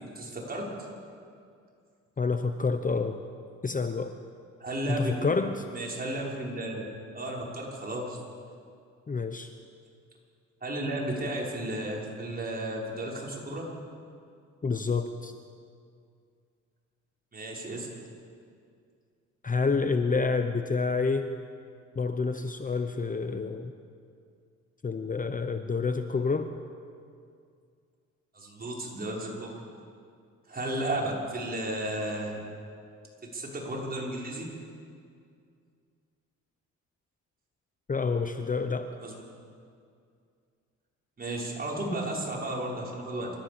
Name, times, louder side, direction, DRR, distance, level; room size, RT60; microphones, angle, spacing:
voice 1, 0.1-0.6 4.6-5.3 5.7-6.8 7.1-8.2 10.6-13.7 17.3-17.9 28.3-29.5 30.5-32.4 33.2-34.5 39.0-39.1 41.2-43.3, right 1 dB, 30° right, -3 dB, 6.0 m, -33 dB
voice 2, 2.2-3.2 3.6-4.2 4.9-5.6 9.1-9.5 14.6-15.3 19.4-21.3 22.0-23.7 24.8-26.5 37.9-38.9, left 4 dB, 25° left, 8 dB, 1.0 m, -28 dB
28.5 x 14.0 x 7.2 m, 2.3 s
cardioid pair, 90°, 30 cm